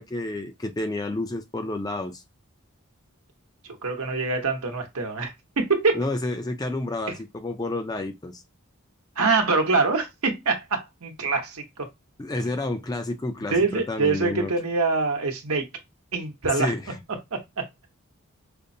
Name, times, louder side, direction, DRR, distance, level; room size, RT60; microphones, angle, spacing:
voice 1, 0.0-2.2 5.9-8.4 12.2-14.5 16.5-16.9, left 2 dB, 15° left, 0.4 m, -30 dB
voice 2, 3.6-6.0 9.2-11.9 13.5-15.7 16.1-16.7 17.3-17.7, right 4 dB, 80° right, 0.9 m, -25 dB
5.0 x 2.0 x 2.6 m
head